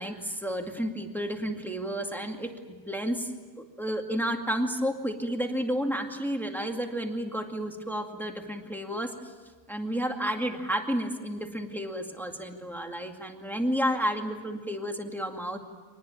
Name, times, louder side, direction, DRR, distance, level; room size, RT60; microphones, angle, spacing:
voice 1, 0.0-3.3 3.6-9.3 9.7-15.6, equal, ahead, 3 dB, 2.1 m, -31 dB
26.0 x 19.5 x 8.8 m, 1.5 s
omnidirectional pair, 1.8 m